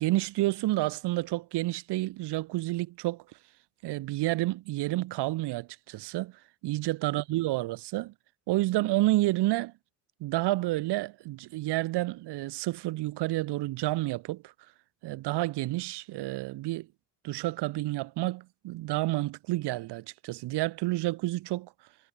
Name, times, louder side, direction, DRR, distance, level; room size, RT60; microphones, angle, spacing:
voice 1, 0.0-3.2 3.8-6.3 6.6-8.1 8.5-9.7 10.2-14.5 15.0-16.9 17.2-21.7, right 18 dB, 70° right, 3.6 m, -29 dB
cardioid pair, 120°, 42 cm